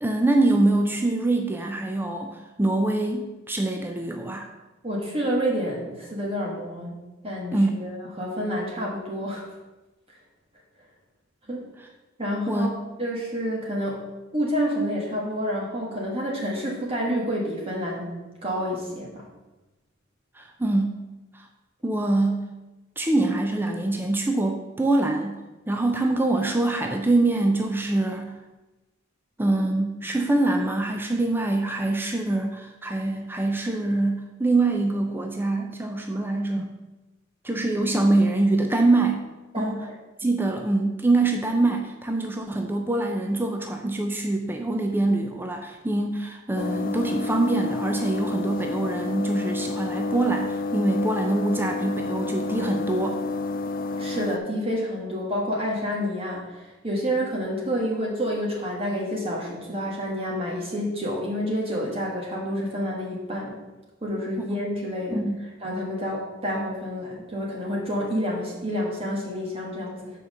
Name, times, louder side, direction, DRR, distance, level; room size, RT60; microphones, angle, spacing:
voice 1, 0.0-4.5 7.5-7.7 12.5-12.7 20.4-21.0 21.3-21.5 21.8-22.5 23.0-25.4 25.7-28.3 29.4-36.8 37.4-39.3 39.6-39.8 40.2-53.2 64.4-64.5 65.1-65.4, right 2 dB, 10° right, 3 dB, 0.5 m, -24 dB
voice 2, 4.8-6.9 7.2-9.5 11.5-11.6 12.2-12.7 13.0-14.0 14.3-18.1 18.4-19.2 39.5-39.9 54.0-63.6 64.0-65.2 65.6-70.1, equal, 30° right, -3 dB, 1.4 m, -29 dB
sound 1, 46.6-54.4, left 3 dB, 45° left, 0.4 m, -30 dB
5.8 x 4.6 x 6.5 m, 1.1 s
head